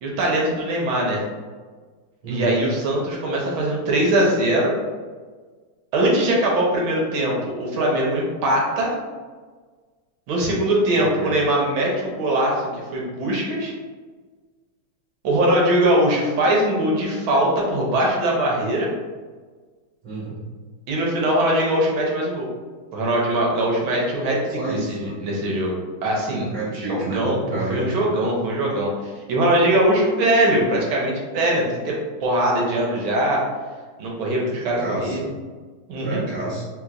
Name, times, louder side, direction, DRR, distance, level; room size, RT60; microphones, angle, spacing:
voice 1, 0.0-1.2 2.3-4.7 5.9-8.9 10.3-13.7 15.2-18.9 20.9-22.4 22.9-25.7 26.0-27.4 27.7-33.4 34.0-35.2 35.9-36.2, right 1 dB, 75° right, -2 dB, 1.5 m, -21 dB
voice 2, 2.2-2.5 10.9-11.4 20.0-20.4 24.5-25.2 26.3-28.1 34.5-35.3 36.0-36.6, right 2 dB, 20° right, -11 dB, 1.3 m, -29 dB
3.8 x 2.9 x 2.4 m, 1.4 s
omnidirectional pair, 2.4 m